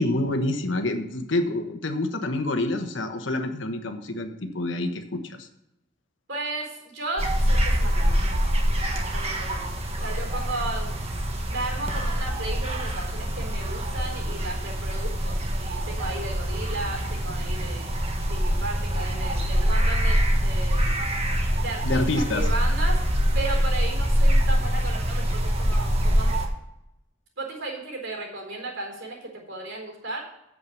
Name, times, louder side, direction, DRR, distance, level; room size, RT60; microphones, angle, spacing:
voice 1, 0.0-5.5 21.8-22.5, left 1 dB, 70° left, 6 dB, 1.3 m, -27 dB
voice 2, 6.3-8.5 8.8-9.7 10.0-11.0 11.5-17.9 18.3-21.0 21.6-23.0 23.3-26.4 27.4-30.2, right 2 dB, 65° right, 0 dB, 4.2 m, -35 dB
sound 1, 7.2-26.5, equal, 30° right, 1.4 m, -24 dB
8.5 x 7.8 x 7.2 m, 0.84 s
head